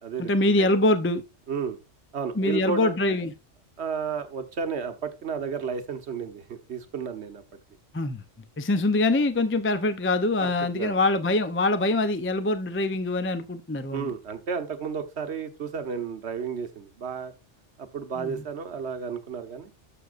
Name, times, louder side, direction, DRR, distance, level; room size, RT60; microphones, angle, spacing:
voice 1, 0.2-1.2 2.4-3.3 7.9-8.2 8.6-14.1 18.2-18.4, left 2 dB, 20° left, 0.3 m, -24 dB
voice 2, 1.5-1.8 2.1-3.2 3.8-7.4 10.4-11.0 13.9-17.3 17.8-19.7, right 6 dB, 65° right, 1.2 m, -32 dB
11.5 x 6.8 x 2.5 m
omnidirectional pair, 1.3 m